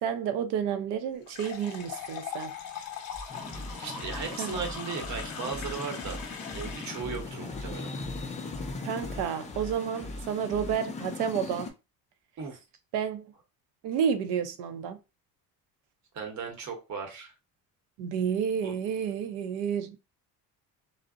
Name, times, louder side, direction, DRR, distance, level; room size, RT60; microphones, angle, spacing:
voice 1, 0.0-2.5 4.4-4.6 8.8-11.7 12.9-13.2 13.8-15.0 18.0-20.0, right 8 dB, 80° right, 0.6 m, -30 dB
sound 1, 1.3-7.2, left 7 dB, 60° left, 0.8 m, -40 dB
sound 2, 3.1-10.8, equal, 5° right, 0.7 m, -43 dB
sound 3, 3.3-11.7, left 4 dB, 20° left, 0.3 m, -40 dB
voice 2, 3.8-6.2 6.5-7.9 12.4-12.6 16.1-17.3 18.6-18.8, right 5 dB, 45° right, 0.9 m, -37 dB
2.6 x 2.0 x 2.3 m
cardioid pair, 110°, 40 cm